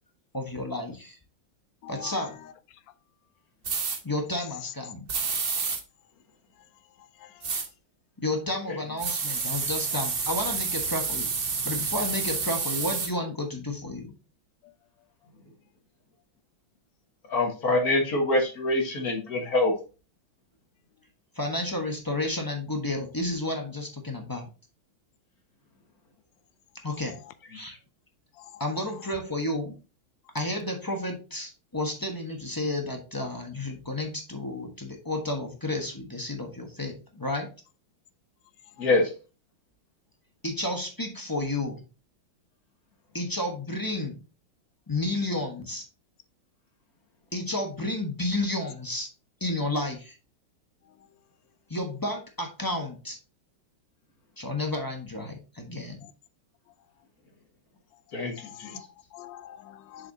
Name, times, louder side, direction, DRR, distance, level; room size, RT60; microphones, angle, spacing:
voice 1, 0.3-1.2 1.9-2.4 4.0-5.0 8.2-11.3 11.6-14.1 21.3-24.5 26.8-27.2 27.5-27.8 28.6-29.8 30.3-37.5 40.4-41.8 43.1-44.2 44.9-45.9 47.3-49.1 49.4-50.2 51.7-53.2 54.4-56.1, left 1 dB, 15° left, 0.8 m, -31 dB
voice 2, 1.8-2.2 7.2-7.3 14.6-14.7 28.4-28.6 38.8-38.9 58.4-60.1, left 11 dB, 75° left, 1.3 m, -45 dB
sound 1, 3.6-4.0 5.1-5.8 7.4-7.7 9.0-13.1, right 5 dB, 40° right, 0.8 m, -29 dB
voice 3, 17.3-19.7 38.8-39.1 58.1-58.8, left 2 dB, 50° left, 1.9 m, -25 dB
6.8 x 5.7 x 2.7 m
omnidirectional pair, 2.2 m